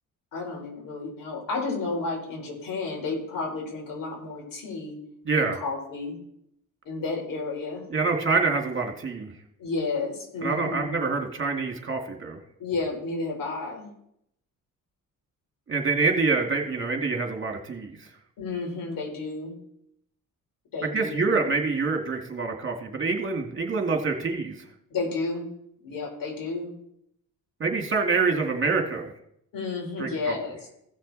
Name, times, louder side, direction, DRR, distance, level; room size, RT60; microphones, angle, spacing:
voice 1, 0.3-5.0 5.3-6.2 6.8-7.8 9.6-11.0 12.6-13.9 18.4-19.6 20.7-21.3 24.9-25.5 25.8-26.7 29.5-30.6, left 3 dB, 75° left, -1 dB, 4.5 m, -32 dB
voice 2, 5.3-5.6 7.9-9.3 10.4-12.4 15.7-18.1 20.8-24.6 27.6-29.1 30.0-30.3, right 4 dB, 35° right, 3 dB, 2.4 m, -26 dB
16.0 x 6.5 x 4.2 m, 0.73 s
cardioid pair, 95°, 34 cm